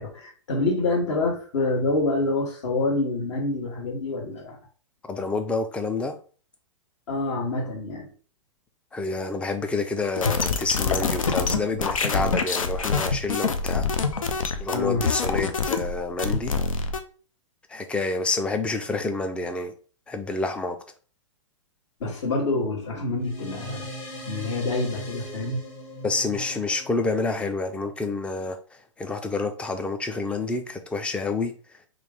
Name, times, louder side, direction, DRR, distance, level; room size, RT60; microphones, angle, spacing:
voice 1, 0.0-4.6 7.1-8.1 14.7-15.1 22.0-23.9 24.3-25.6, left 2 dB, 60° left, 0 dB, 1.3 m, -27 dB
voice 2, 5.1-6.2 8.9-13.9 14.6-16.6 17.7-19.7 20.1-20.8 26.0-31.8, left 3 dB, 5° left, 7 dB, 0.3 m, -28 dB
sound 1, 10.2-17.0, left 5 dB, 85° left, 0.5 m, -26 dB
sound 2, 23.2-28.0, equal, 30° left, 1.1 m, -39 dB
3.1 x 2.5 x 3.4 m, 0.39 s
hypercardioid pair, 115°, 17 cm